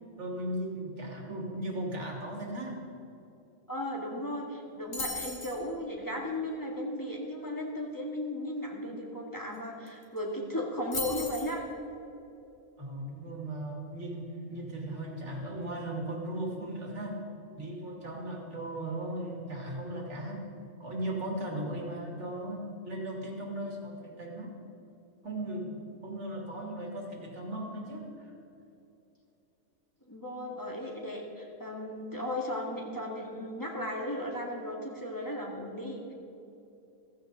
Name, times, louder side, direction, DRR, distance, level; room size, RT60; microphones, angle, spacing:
voice 1, 0.2-2.8 12.8-17.3 17.6-20.4 20.8-24.5 25.2-28.3, right 1 dB, 50° right, 0 dB, 2.6 m, -37 dB
voice 2, 3.7-11.6 30.1-36.1, left 1 dB, 15° left, -1 dB, 2.1 m, -36 dB
sound 1, 4.9-5.6 9.5-9.6 9.9-10.2 10.9-11.5, left 2 dB, 40° left, 2.3 m, -36 dB
15.5 x 15.5 x 4.0 m, 2.8 s
omnidirectional pair, 1.5 m